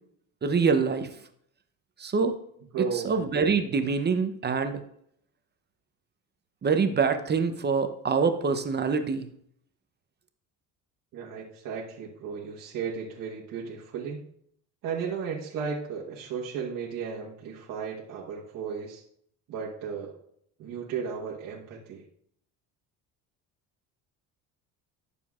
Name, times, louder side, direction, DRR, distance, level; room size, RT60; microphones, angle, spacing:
voice 1, 0.4-1.1 2.0-2.4 3.0-4.8 6.6-9.3, right 5 dB, 30° right, 8 dB, 0.7 m, -25 dB
voice 2, 2.7-3.1 11.1-14.2 14.8-19.0 19.5-20.2 20.6-22.0, right 6 dB, 65° right, -3 dB, 1.3 m, -34 dB
11.5 x 6.8 x 2.4 m, 0.69 s
cardioid pair, 105°, 36 cm